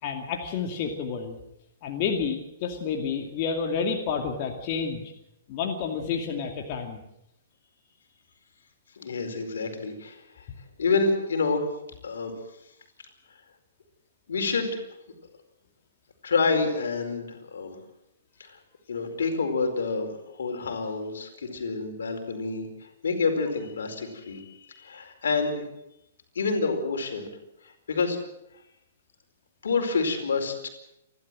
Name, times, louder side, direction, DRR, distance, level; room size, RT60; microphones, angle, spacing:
voice 1, 0.0-1.4 1.8-5.1 5.5-7.0, left 6 dB, 40° left, 3 dB, 2.5 m, -30 dB
voice 2, 9.0-10.5 10.8-11.6 12.0-12.3 14.3-14.8 16.2-17.8 18.4-18.5 18.9-25.7 26.3-27.3 27.6-28.2 29.6-30.7, left 4 dB, 85° left, 5 dB, 4.6 m, -28 dB
28.5 x 12.0 x 7.6 m, 0.83 s
hypercardioid pair, 140°, 0 cm